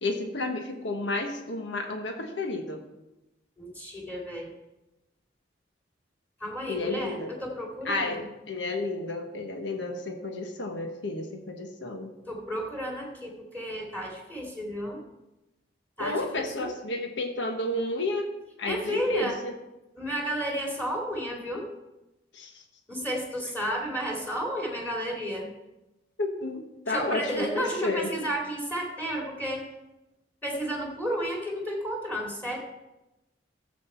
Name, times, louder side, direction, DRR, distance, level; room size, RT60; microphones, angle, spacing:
voice 1, 0.0-2.8 6.6-7.3 7.8-8.2 8.5-12.1 16.0-18.3 18.6-19.5 22.3-22.5 26.2-28.1, left 2 dB, 75° left, 4 dB, 1.3 m, -31 dB
voice 2, 3.6-4.5 6.4-8.3 12.3-15.0 16.0-16.7 18.7-19.4 19.9-21.7 22.9-25.5 26.9-29.7 30.4-32.7, equal, 10° left, -2 dB, 2.4 m, -32 dB
13.5 x 7.6 x 4.4 m, 0.97 s
head